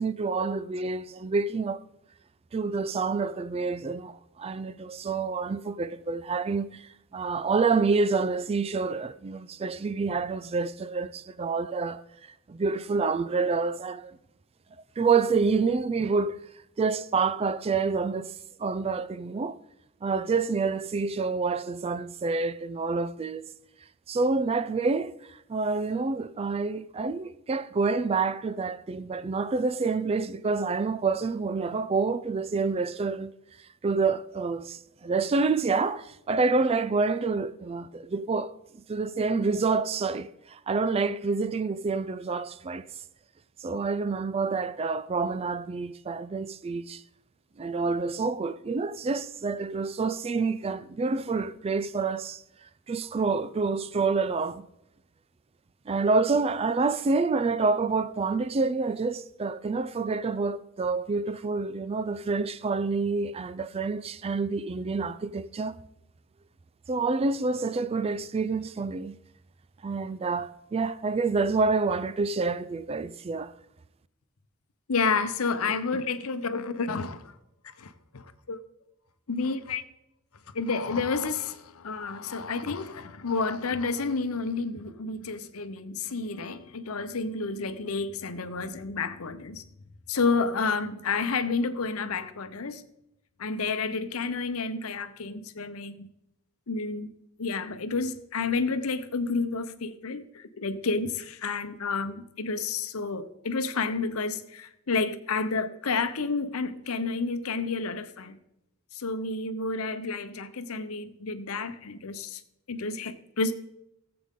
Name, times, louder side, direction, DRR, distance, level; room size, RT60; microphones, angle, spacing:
voice 1, 0.0-1.8 2.5-12.0 12.5-14.2 15.0-16.4 16.8-18.3 18.6-19.6 20.0-23.4 24.1-33.3 33.8-38.5 38.9-42.9 43.6-47.0 47.6-52.4 52.9-54.6 55.9-65.8 66.9-69.2 69.8-73.5, right 4 dB, 30° right, 0.3 m, -28 dB
voice 2, 74.9-77.3 77.6-78.6 79.3-79.8 80.5-89.7 90.1-92.8 93.4-96.1 96.7-97.1 97.4-108.4 108.9-112.4 112.7-113.5, left 4 dB, 85° left, 0.8 m, -30 dB
17.0 x 7.8 x 3.7 m
head